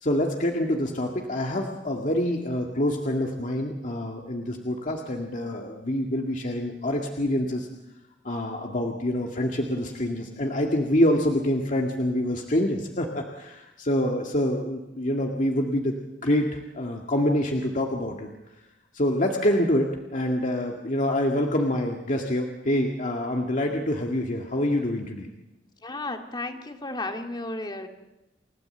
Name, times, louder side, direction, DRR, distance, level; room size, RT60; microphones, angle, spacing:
voice 1, 0.0-7.7 8.2-16.0 16.2-18.3 18.9-25.3, left 1 dB, 45° left, 1 dB, 2.0 m, -26 dB
voice 2, 25.8-27.9, left 2 dB, 25° left, 5 dB, 2.3 m, -33 dB
29.0 x 16.5 x 8.0 m, 0.94 s
head